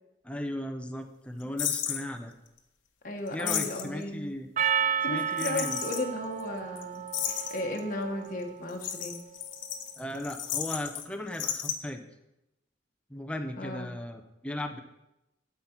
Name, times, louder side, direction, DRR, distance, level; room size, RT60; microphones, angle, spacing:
voice 1, 0.2-2.3 3.3-4.5 5.1-5.8 10.0-12.1 13.1-14.8, left 1 dB, 5° left, 3 dB, 0.7 m, -36 dB
sound 1, 1.6-2.0 3.3-4.0 5.4-6.0 6.4-6.5 6.8-6.9 7.1-7.8 8.7-11.0 11.3-11.7, left 9 dB, 80° left, 1.0 m, -33 dB
voice 2, 3.0-4.4 5.0-7.1 7.5-9.2 13.6-13.9, left 1 dB, 45° left, 2 dB, 1.1 m, -35 dB
Percussion, 4.6-9.2, right 8 dB, 40° right, 0.4 m, -32 dB
11.5 x 5.7 x 4.4 m, 0.92 s
head